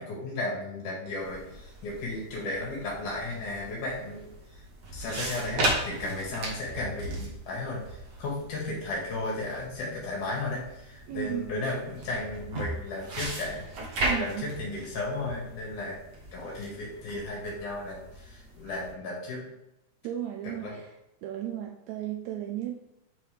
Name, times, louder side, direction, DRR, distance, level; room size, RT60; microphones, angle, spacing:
voice 1, 0.0-4.3 4.9-13.7 14.1-16.0 16.3-19.4 20.4-20.8, left 2 dB, 75° left, -4 dB, 3.4 m, -34 dB
sound 1, 1.2-18.9, right 2 dB, 60° right, 1.1 m, -37 dB
voice 2, 11.1-11.4 14.0-14.5 20.0-20.9 21.2-22.7, right 12 dB, 80° right, 3 dB, 1.7 m, -34 dB
8.5 x 4.1 x 3.2 m, 0.86 s
omnidirectional pair, 3.6 m